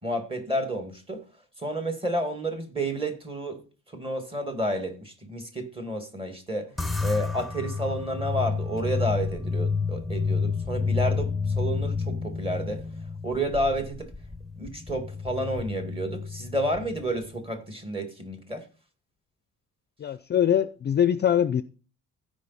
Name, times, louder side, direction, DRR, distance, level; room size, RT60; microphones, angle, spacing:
voice 1, 0.0-1.2 1.6-3.6 3.9-6.7 7.0-12.8 13.2-14.1 14.6-18.7, right 1 dB, 20° right, 2.0 m, -30 dB
sound 1, 6.8-17.4, left 5 dB, ahead, 0.7 m, -30 dB
voice 2, 20.0-21.6, left 9 dB, 35° left, 0.4 m, -23 dB
15.0 x 5.1 x 4.1 m
cardioid pair, 125°, 30 cm